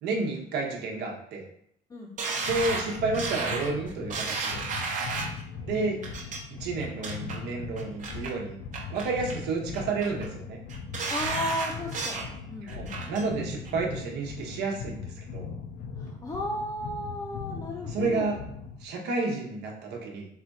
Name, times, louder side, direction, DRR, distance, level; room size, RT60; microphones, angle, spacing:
voice 1, 0.0-1.4 2.5-4.6 5.7-6.0 6.5-8.6 8.9-10.6 12.6-15.4 17.9-18.4 18.8-20.3, right 3 dB, 85° right, 0 dB, 1.0 m, -31 dB
sound 1, 2.2-5.4 6.0-6.4 6.8-7.4 7.8-8.3 8.7-9.4 9.7-10.3 10.7-12.3 12.7-13.2 13.6-13.7, right 4 dB, 50° right, 0.8 m, -33 dB
sound 2, 2.4-18.8, left 5 dB, 75° left, 0.6 m, -40 dB
voice 2, 5.7-6.1 11.1-13.1 16.0-18.3, left 1 dB, 20° left, -2 dB, 0.5 m, -35 dB
4.2 x 2.3 x 4.0 m, 0.71 s
cardioid pair, 110°, 17 cm